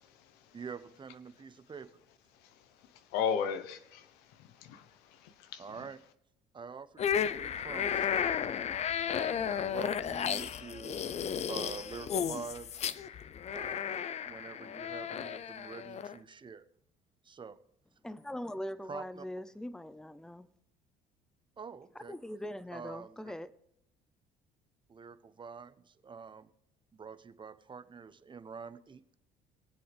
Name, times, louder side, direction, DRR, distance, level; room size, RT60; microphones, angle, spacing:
voice 1, 0.0-0.6 2.4-5.7, left 7 dB, 85° left, 1.1 m, -37 dB
voice 2, 0.5-1.9 5.6-6.0 6.5-8.2 9.1-11.1 11.5-12.9 13.5-16.6 17.2-17.6 18.9-19.2 21.6-22.1 22.7-23.2 24.9-26.5 26.9-29.1, right 5 dB, 30° right, 1.0 m, -46 dB
sound 1, 7.0-16.2, left 8 dB, 45° left, 0.7 m, -34 dB
voice 3, 18.0-20.5 21.9-23.5, left 1 dB, 5° left, 0.7 m, -41 dB
23.0 x 7.7 x 3.5 m
supercardioid pair, 85°, 16 cm